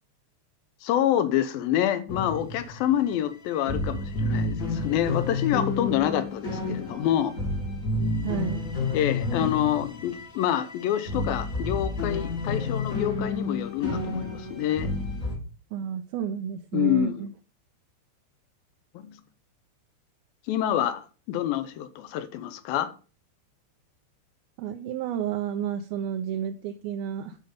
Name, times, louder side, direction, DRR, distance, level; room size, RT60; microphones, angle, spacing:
voice 1, 0.8-7.3 8.9-14.9 16.7-17.2 18.9-19.2 20.5-22.9, left 11 dB, 75° left, 12 dB, 2.3 m, -27 dB
sound 1, 2.1-3.0 3.3-3.4 3.6-15.4, left 3 dB, 40° left, 1.1 m, -30 dB
voice 2, 8.2-8.7 9.4-9.5 15.7-17.3 24.6-27.4, right 9 dB, 80° right, 5 dB, 2.3 m, -31 dB
10.5 x 5.0 x 5.5 m, 0.35 s
omnidirectional pair, 4.8 m